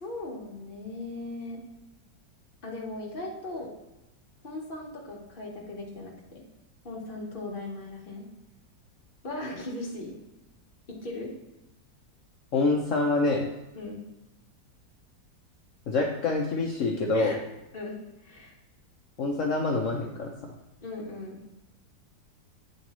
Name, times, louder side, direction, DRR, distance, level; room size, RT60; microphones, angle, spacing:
voice 1, 0.0-1.6 2.6-3.7 4.4-6.4 6.8-8.2 9.2-10.2 10.9-11.3 13.7-14.0 17.1-17.4 17.7-18.0 18.2-18.6 20.8-21.4, left 2 dB, 30° left, -2 dB, 1.3 m, -38 dB
voice 2, 12.5-13.5 15.9-17.3 19.2-20.3, left 3 dB, 75° left, 0 dB, 0.7 m, -26 dB
8.6 x 4.0 x 2.9 m, 0.97 s
omnidirectional pair, 2.0 m